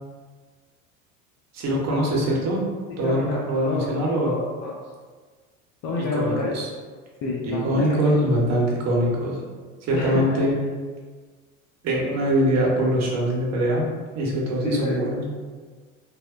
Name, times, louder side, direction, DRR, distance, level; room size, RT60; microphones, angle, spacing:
voice 1, 1.5-2.6 3.0-4.3 6.0-6.7 7.4-9.4 9.8-10.6 11.8-13.9 14.1-15.2, right 1 dB, 40° right, -3 dB, 0.8 m, -23 dB
voice 2, 3.0-3.4 3.6-3.9 4.2-4.8 5.8-6.5 7.2-8.0 9.9-10.2 14.6-15.0, left 3 dB, 45° left, -4 dB, 0.5 m, -28 dB
2.7 x 2.0 x 2.4 m, 1.5 s
hypercardioid pair, 75°, 41 cm